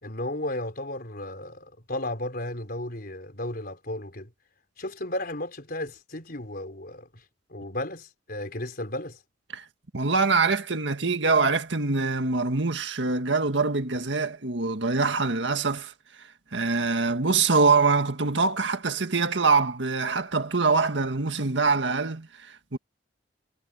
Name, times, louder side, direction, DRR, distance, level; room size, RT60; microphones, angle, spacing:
voice 1, 0.0-4.3 4.8-7.2 7.5-9.2, left 1 dB, 50° left, 4.4 m, -34 dB
voice 2, 9.9-15.9 16.5-22.8, right 4 dB, 75° right, 1.8 m, -24 dB
head